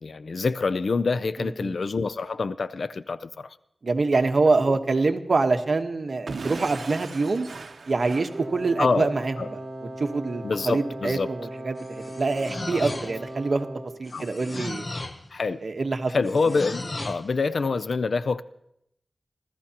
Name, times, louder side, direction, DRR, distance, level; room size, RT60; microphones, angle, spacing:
voice 1, 0.0-3.5 4.7-4.8 8.8-9.1 9.4-9.5 10.4-11.3 12.7-12.8 14.1-14.3 15.3-15.6 16.1-18.4, left 4 dB, 75° left, 0.5 m, -26 dB
voice 2, 1.4-1.7 3.8-7.5 7.9-9.6 10.0-13.7 14.0-14.9 15.6-16.1, right 3 dB, 60° right, 1.2 m, -25 dB
Explosion / Shatter, 6.3-9.0, right 4 dB, 80° right, 0.8 m, -38 dB
Wind instrument woodwind instrument, 8.3-14.0, right 1 dB, 30° right, 3.5 m, -38 dB
sound 1, 11.8-13.4 14.0-15.3 16.2-17.3, left 2 dB, 45° left, 0.9 m, -35 dB
29.5 x 13.5 x 2.9 m
wide cardioid pair, 95°, 0 cm